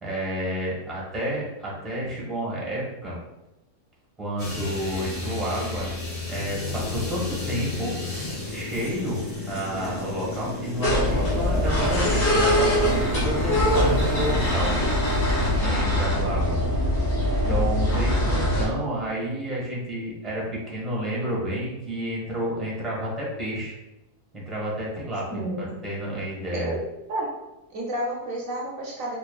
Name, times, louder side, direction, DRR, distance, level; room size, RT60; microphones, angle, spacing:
voice 1, 0.0-3.2 4.2-7.9 8.5-9.2 9.5-14.7 15.4-16.6 17.5-23.8 24.3-26.7, right 1 dB, ahead, -6 dB, 0.9 m, -30 dB
sound 1, 4.4-15.6, left 3 dB, 30° left, 1.5 m, -33 dB
sound 2, 10.8-18.7, left 1 dB, 70° left, 1.9 m, -22 dB
voice 2, 25.3-25.7 26.5-26.8 27.1-27.3 27.7-29.2, right 1 dB, 65° right, -3 dB, 1.0 m, -30 dB
4.7 x 3.1 x 2.3 m, 0.96 s
omnidirectional pair, 1.6 m